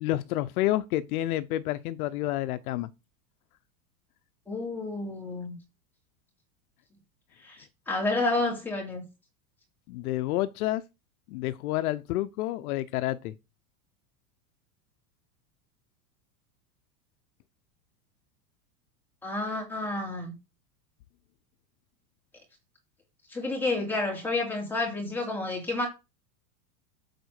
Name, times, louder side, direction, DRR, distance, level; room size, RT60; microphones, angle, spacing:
voice 1, 0.0-2.9 9.9-10.8 11.3-13.3, left 15 dB, 70° left, 0.7 m, -29 dB
voice 2, 4.5-5.6 7.4-7.6 7.9-9.0 19.2-20.3 23.3-25.9, left 2 dB, 5° left, 3.1 m, -30 dB
7.8 x 4.2 x 6.4 m
supercardioid pair, 160°, 46 cm